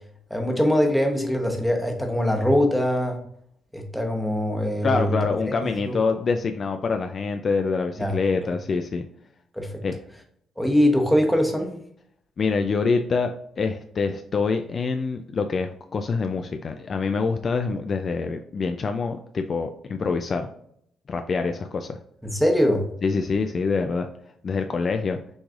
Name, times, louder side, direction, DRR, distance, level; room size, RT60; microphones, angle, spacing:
voice 1, 0.3-3.2 3.7-5.1 8.0-8.2 9.6-9.7 10.6-11.7 22.2-22.8, equal, ahead, 2 dB, 1.0 m, -22 dB
voice 2, 4.8-9.0 9.8-10.0 12.4-20.5 21.1-22.0 23.0-24.1 24.4-25.2, left 4 dB, 45° left, 6 dB, 0.3 m, -25 dB
6.2 x 3.2 x 2.4 m, 0.68 s
cardioid pair, 90°, 0 cm